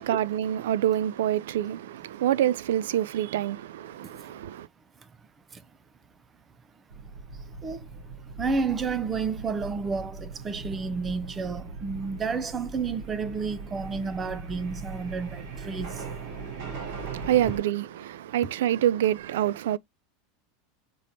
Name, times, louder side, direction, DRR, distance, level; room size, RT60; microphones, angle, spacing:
voice 1, 0.0-4.7 16.9-19.8, right 11 dB, 90° right, 0.3 m, -26 dB
sound 1, 6.9-17.6, right 4 dB, 70° right, 3.8 m, -39 dB
voice 2, 8.4-16.0, right 5 dB, 20° right, 0.6 m, -31 dB
5.2 x 3.4 x 2.7 m
supercardioid pair, 150°, 0 cm